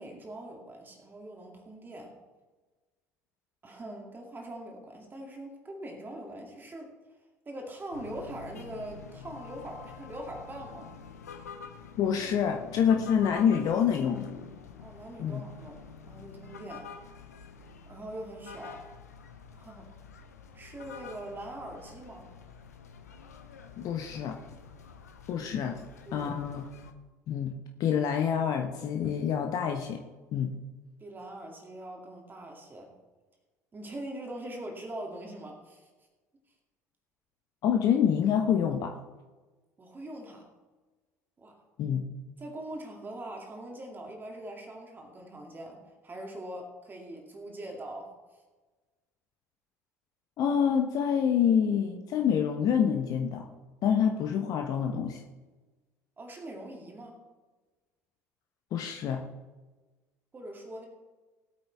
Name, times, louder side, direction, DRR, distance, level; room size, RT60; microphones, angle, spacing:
voice 1, 0.0-2.1 3.6-6.9 7.5-10.9 14.8-15.8 16.1-16.9 17.9-18.8 19.5-19.9 20.5-22.3 26.1-26.3 31.0-32.9 33.7-35.9 39.8-40.4 41.4-41.6 42.4-48.1 56.2-57.2 60.3-60.9, right 1 dB, 25° right, 1 dB, 2.6 m, -42 dB
sound 1, 7.9-26.9, left 6 dB, 75° left, 1.0 m, -47 dB
voice 2, 12.0-14.3 15.2-15.4 23.8-24.4 25.3-25.8 26.1-26.6 27.3-27.5 27.8-30.0 30.3-30.5 37.6-38.9 41.8-42.1 50.4-53.5 53.8-55.2 58.7-59.2, left 8 dB, 45° left, 4 dB, 1.0 m, -27 dB
19.5 x 8.6 x 3.5 m, 1.3 s
figure-of-eight pair, 60°, 9 cm